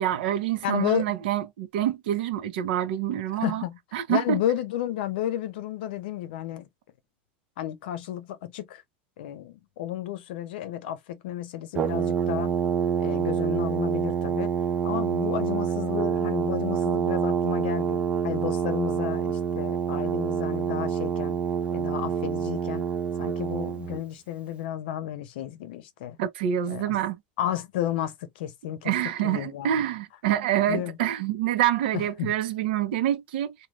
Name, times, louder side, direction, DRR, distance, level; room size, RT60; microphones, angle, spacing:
voice 1, 0.0-3.6 3.9-4.4 26.2-27.2 28.8-33.5, right 11 dB, 75° right, 0.7 m, -26 dB
voice 2, 0.6-1.2 3.4-3.8 4.1-6.7 7.6-8.8 9.2-12.5 13.0-14.5 14.8-21.4 21.7-22.9 23.2-26.2 26.7-27.0 27.4-28.9 29.2-29.7 30.7-31.0 31.9-32.3, left 12 dB, 80° left, 0.6 m, -32 dB
Brass instrument, 11.7-24.0, right 7 dB, 20° right, 0.3 m, -27 dB
3.1 x 2.3 x 2.4 m
supercardioid pair, 155°, 5 cm